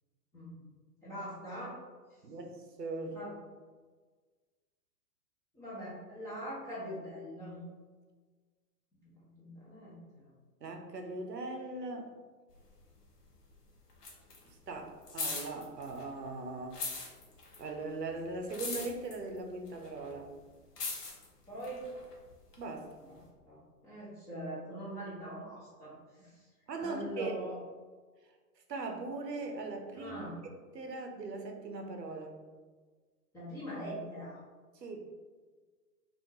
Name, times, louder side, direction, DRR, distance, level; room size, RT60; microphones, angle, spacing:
voice 1, 1.0-1.8 3.1-3.3 5.5-7.6 8.9-10.3 21.5-21.9 23.0-23.2 23.4-26.5 26.8-27.6 30.0-30.3 33.3-34.4, equal, 5° left, -9 dB, 0.5 m, -43 dB
voice 2, 2.2-3.2 10.6-12.1 14.4-16.8 17.6-20.3 22.6-22.9 26.7-27.3 28.7-30.1 30.7-32.4 34.7-35.1, right 3 dB, 85° right, 3 dB, 0.7 m, -40 dB
sound 1, 12.5-13.5 13.8-16.3 16.6-22.6 23.2-23.3, left 3 dB, 75° left, 0.8 m, -41 dB
3.5 x 2.5 x 2.7 m, 1.4 s
figure-of-eight pair, 110°, 48 cm